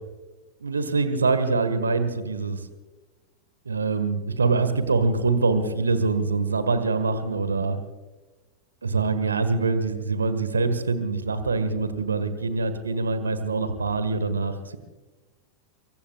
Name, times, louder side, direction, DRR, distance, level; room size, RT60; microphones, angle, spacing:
voice 1, 0.6-2.6 3.7-7.8 8.8-14.8, right 4 dB, 75° right, 11 dB, 1.6 m, -24 dB
25.0 x 23.0 x 2.4 m, 1.2 s
figure-of-eight pair, 90°, 0 cm